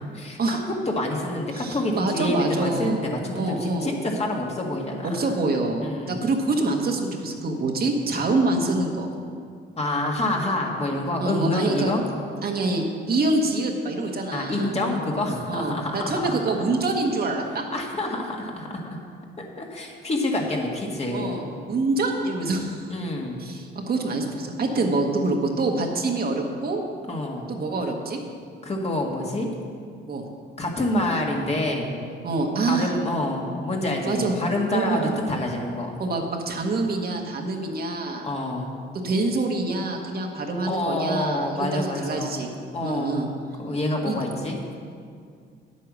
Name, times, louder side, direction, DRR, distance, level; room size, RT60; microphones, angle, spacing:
voice 1, 0.9-5.2 5.8-6.3 9.8-12.0 14.3-16.3 17.7-18.8 19.4-21.4 22.9-23.4 27.1-27.5 28.6-29.5 30.6-32.0 32.7-36.0 38.2-38.7 40.6-42.4 42.7-43.2 43.6-44.6, left 1 dB, 30° left, 0 dB, 1.8 m, -27 dB
voice 2, 1.5-4.0 5.0-9.1 11.2-11.9 12.4-14.8 15.5-17.6 21.1-22.8 23.4-26.8 27.5-28.2 30.1-30.3 32.2-32.9 34.0-34.3 34.7-35.1 36.0-38.2 39.0-42.5 42.8-43.3 44.0-44.2, right 2 dB, 50° right, 2 dB, 1.4 m, -26 dB
9.2 x 8.4 x 6.2 m, 2.2 s
cardioid pair, 90°, 20 cm